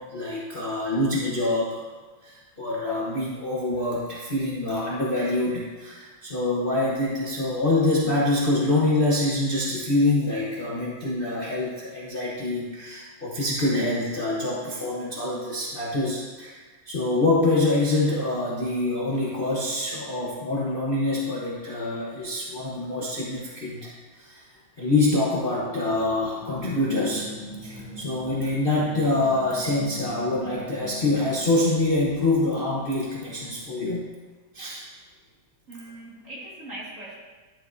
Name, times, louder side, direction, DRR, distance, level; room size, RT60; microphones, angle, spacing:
voice 1, 0.0-1.8 2.2-23.9 24.2-24.5 24.8-27.3 27.6-34.1 34.5-34.9, left 2 dB, 35° left, -6 dB, 1.0 m, -25 dB
sound 1, 26.4-31.5, left 1 dB, 65° left, 1.4 m, -41 dB
voice 2, 35.7-37.2, right 1 dB, 40° right, -6 dB, 2.1 m, -40 dB
11.5 x 7.3 x 2.7 m, 1.3 s
omnidirectional pair, 2.2 m